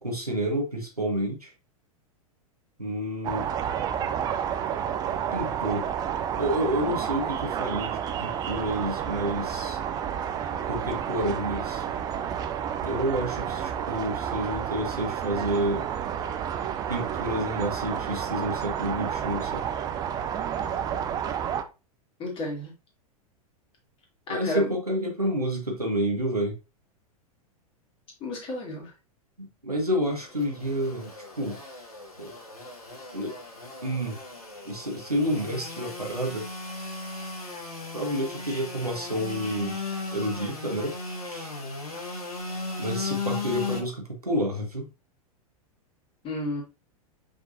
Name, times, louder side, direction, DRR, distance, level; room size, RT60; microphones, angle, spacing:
voice 1, 0.0-1.5 2.8-3.5 5.3-5.9 6.4-9.8 10.7-11.8 12.8-15.8 16.9-19.6 24.3-26.6 29.4-31.1 31.4-31.6 32.2-32.3 33.1-33.3 33.8-34.2 34.6-36.4 37.9-39.8 40.1-41.0 41.2-41.5 42.8-44.9, right 1 dB, 90° right, 1 dB, 1.2 m, -29 dB
sound 1, 3.2-21.6, right 8 dB, 20° right, 0.4 m, -30 dB
voice 2, 22.2-22.7 24.3-24.8 28.2-28.9 46.2-46.6, left 2 dB, 30° left, -1 dB, 2.0 m, -32 dB
Engine / Sawing, 30.0-43.8, left 3 dB, 80° left, 1.4 m, -36 dB
5.2 x 3.8 x 2.6 m, 0.29 s
figure-of-eight pair, 95°, 19 cm